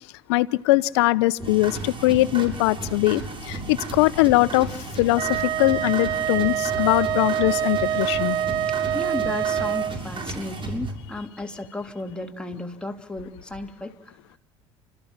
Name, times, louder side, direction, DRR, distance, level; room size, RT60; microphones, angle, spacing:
voice 1, 0.3-3.2 3.5-4.7 5.0-8.4, left 18 dB, 80° left, 0.8 m, -21 dB
sound 1, 1.4-10.9, right 3 dB, 40° right, 6.5 m, -34 dB
Wind instrument woodwind instrument, 5.1-10.0, right 10 dB, 75° right, 1.7 m, -25 dB
voice 2, 8.9-13.9, left 2 dB, 5° left, 3.0 m, -34 dB
29.0 x 14.5 x 7.4 m
hypercardioid pair, 70°, 14 cm